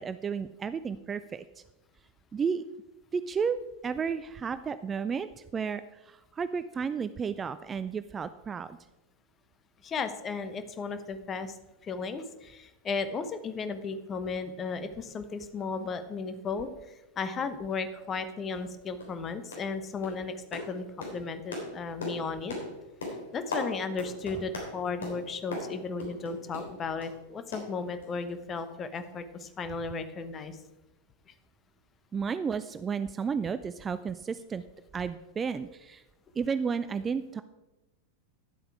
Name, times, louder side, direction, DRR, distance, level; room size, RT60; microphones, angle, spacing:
voice 1, 0.0-1.6 2.3-2.7 3.1-3.6 3.8-8.8 32.1-34.6 34.9-36.0 36.4-37.4, right 6 dB, 20° right, 13 dB, 0.4 m, -32 dB
voice 2, 9.8-11.6 11.8-22.5 23.3-30.6, left 4 dB, 25° left, 10 dB, 1.0 m, -35 dB
sound 1, 18.5-18.7 19.0-19.2 19.5-19.8 20.0-27.2 27.5-28.3 28.6-28.7 29.0-29.1, left 2 dB, 65° left, 3.4 m, -39 dB
11.0 x 7.8 x 4.8 m, 1.0 s
figure-of-eight pair, 90°, 0 cm